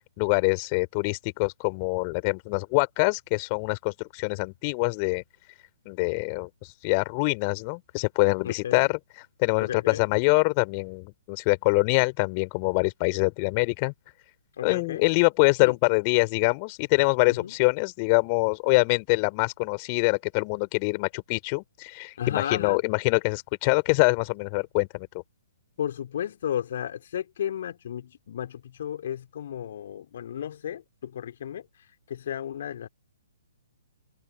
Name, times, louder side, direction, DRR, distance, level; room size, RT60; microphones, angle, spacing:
voice 1, 0.2-5.2 5.8-6.5 6.8-9.0 9.4-13.9 14.6-25.1, left 33 dB, 30° left, 3.1 m, -24 dB
voice 2, 8.4-8.9 9.6-10.1 14.6-15.0 15.6-15.7 17.3-17.5 22.2-22.8 25.8-31.7 32.1-32.9, left 10 dB, 50° left, 2.7 m, -33 dB
figure-of-eight pair, 125°, 0 cm